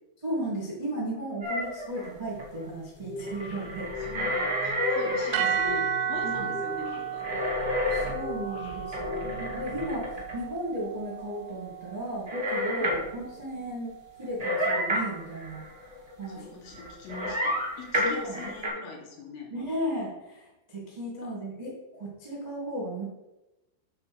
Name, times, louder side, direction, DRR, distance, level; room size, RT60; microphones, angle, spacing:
voice 1, 0.2-3.9 6.2-6.5 7.9-15.6 16.2-16.4 18.0-18.4 19.5-23.0, right 1 dB, 70° right, -5 dB, 0.4 m, -35 dB
sound 1, 1.4-2.4 3.2-5.6 7.2-8.3 8.7-10.4 12.3-13.0 14.4-16.2 16.7-18.7, equal, 25° right, 0.7 m, -30 dB
sound 2, 3.0-9.9, left 2 dB, 60° left, 1.4 m, -40 dB
voice 2, 4.1-7.2 12.8-12.9 16.3-19.5 21.2-21.3, left 4 dB, 85° left, -1 dB, 4.3 m, -42 dB
sound 3, 5.3-13.6, right 8 dB, 90° right, 3.1 m, -34 dB
8.7 x 4.0 x 6.3 m, 0.97 s
omnidirectional pair, 5.5 m